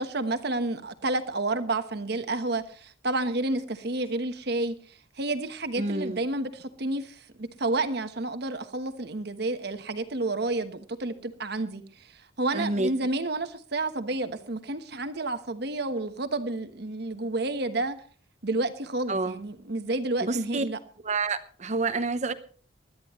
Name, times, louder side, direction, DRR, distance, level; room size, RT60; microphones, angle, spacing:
voice 1, 0.0-4.7 5.2-11.8 12.4-18.0 18.4-20.8, right 2 dB, 60° right, 1.2 m, -30 dB
voice 2, 5.8-6.2 12.5-12.9 19.1-19.4 20.2-20.6 21.0-22.3, right 3 dB, 40° right, 0.9 m, -28 dB
20.5 x 13.0 x 3.1 m
head